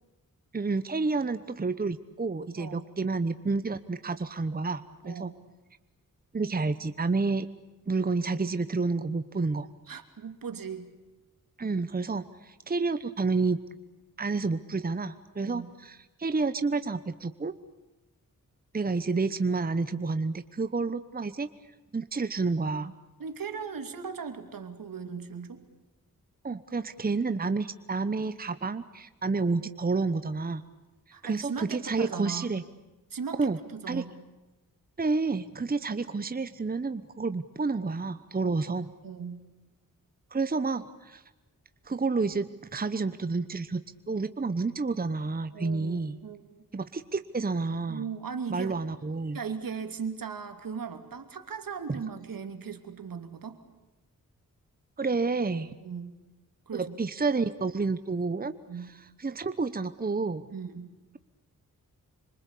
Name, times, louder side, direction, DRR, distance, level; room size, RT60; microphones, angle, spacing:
voice 1, 0.5-5.3 6.3-7.5 7.9-9.7 11.6-13.6 14.2-17.5 18.7-21.5 21.9-22.9 26.4-30.6 31.2-32.6 33.4-33.6 33.9-34.0 35.0-38.9 40.3-41.2 41.9-46.2 46.7-48.1 48.5-49.4 55.0-55.7 56.7-58.5 59.2-60.4, right 4 dB, 25° right, 12 dB, 1.0 m, -29 dB
voice 2, 9.9-10.9 15.4-15.7 23.2-25.7 31.1-32.5 33.1-34.3 38.4-38.6 39.0-39.4 45.5-46.6 47.9-48.8 49.3-53.6 55.8-56.2 56.7-57.0 58.7-59.0 60.5-60.9, right 6 dB, 75° right, 7 dB, 2.9 m, -38 dB
27.0 x 25.0 x 8.5 m, 1.1 s
wide cardioid pair, 85°, 34 cm